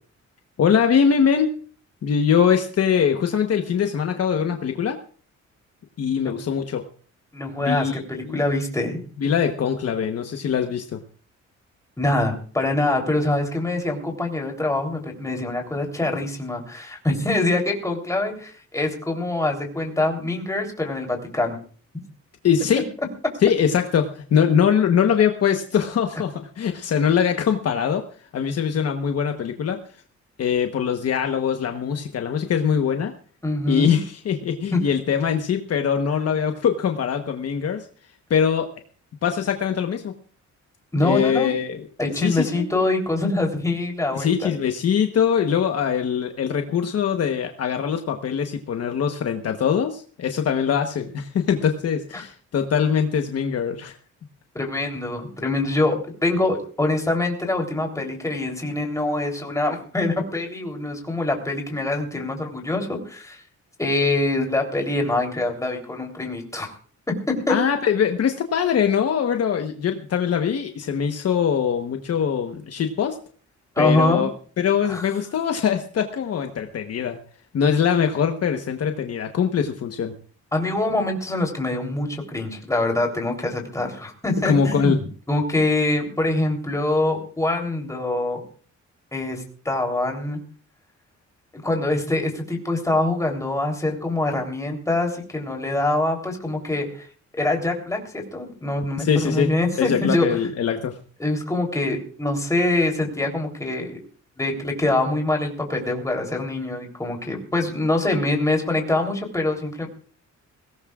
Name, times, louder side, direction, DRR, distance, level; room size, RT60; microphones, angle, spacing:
voice 1, 0.6-1.5 2.0-5.0 6.0-6.8 7.6-8.4 9.2-11.0 22.4-22.8 23.4-28.0 28.3-29.8 30.4-33.1 33.7-37.9 38.3-38.7 39.2-40.1 41.0-41.8 42.1-42.6 44.1-54.0 67.5-73.2 73.8-74.3 74.6-77.2 77.5-80.1 84.4-85.0 99.0-99.5 99.8-100.9, left 7 dB, 55° left, 5 dB, 1.1 m, -22 dB
voice 2, 7.3-9.0 12.0-21.6 33.4-34.0 34.7-34.8 40.9-41.5 42.0-44.5 52.1-52.2 54.6-63.4 63.8-66.7 67.3-67.6 73.8-74.2 74.9-75.0 80.5-88.4 89.1-90.4 91.5-97.1 97.3-98.0 98.3-100.3 101.2-104.0 104.4-109.9, left 2 dB, 10° left, 2 dB, 3.5 m, -24 dB
21.5 x 17.5 x 2.4 m, 0.42 s
cardioid pair, 145°, 29 cm